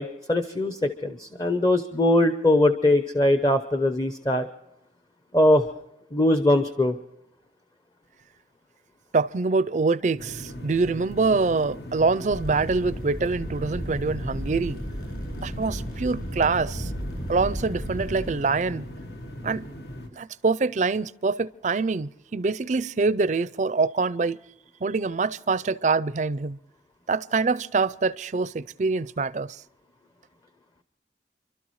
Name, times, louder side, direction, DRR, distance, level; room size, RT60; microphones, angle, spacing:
voice 1, 0.0-4.5 5.3-5.6 6.1-6.9, left 1 dB, 25° left, 0.7 m, -21 dB
voice 2, 9.1-14.8 15.4-16.9 17.3-18.9 19.4-19.7 20.1-24.4 24.8-26.6 27.1-29.6, right 4 dB, 40° right, 0.4 m, -25 dB
sound 1, 10.2-20.1, equal, 70° left, 1.4 m, -40 dB
sound 2, 12.3-18.3, equal, 55° left, 7.2 m, -34 dB
29.0 x 12.5 x 3.1 m
head